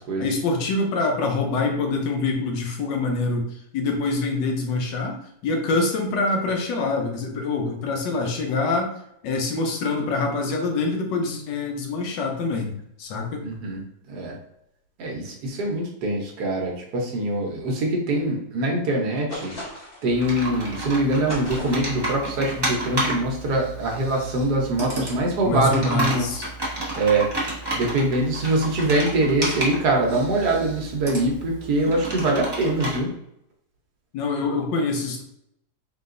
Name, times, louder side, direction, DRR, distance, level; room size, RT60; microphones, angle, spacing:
voice 1, 0.2-8.9 9.2-13.4 25.4-26.5 34.1-35.2, left 3 dB, 85° left, 3 dB, 1.4 m, -25 dB
voice 2, 13.4-13.8 14.1-14.4 15.0-19.5 20.0-26.3 26.9-27.3 27.7-33.1, right 2 dB, 65° right, 0 dB, 1.4 m, -23 dB
sound 1, 19.3-20.1 21.3-22.0, left 1 dB, 40° left, 1.1 m, -35 dB
Computer keyboard, 20.1-33.0, right 2 dB, 20° right, 0.8 m, -31 dB
3.8 x 3.8 x 2.5 m, 0.76 s
omnidirectional pair, 1.9 m